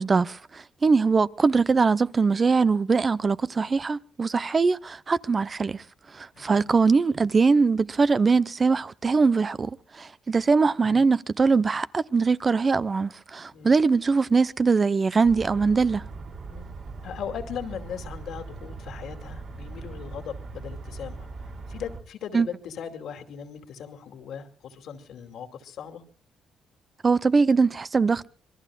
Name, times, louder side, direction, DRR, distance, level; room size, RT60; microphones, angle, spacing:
voice 1, 0.0-5.8 6.1-16.1 22.3-22.5 27.0-28.3, right 4 dB, 35° right, 0.7 m, -22 dB
voice 2, 6.3-6.7 10.8-11.1 13.5-13.7 16.5-16.7 17.0-26.0, left 8 dB, 75° left, 2.5 m, -39 dB
sound 1, 15.2-22.0, right 3 dB, 55° right, 4.2 m, -40 dB
26.5 x 21.5 x 2.3 m
cardioid pair, 90°, 0 cm